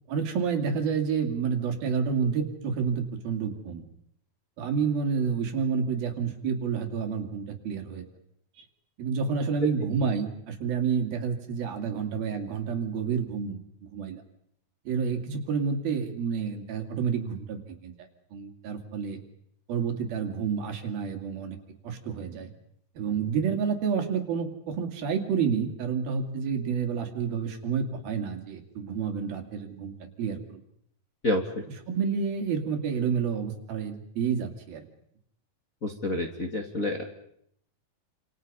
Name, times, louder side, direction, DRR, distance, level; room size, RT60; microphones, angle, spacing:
voice 1, 0.1-3.8 4.6-8.1 8.6-8.7 9.0-13.6 13.9-14.2 14.9-17.9 18.3-19.2 19.7-21.6 21.8-22.5 23.0-30.6 31.9-34.9, right 6 dB, 75° right, 4 dB, 4.3 m, -29 dB
voice 2, 35.8-37.0, left 1 dB, 25° left, 1 dB, 2.0 m, -28 dB
28.0 x 27.5 x 5.5 m, 0.71 s
omnidirectional pair, 4.3 m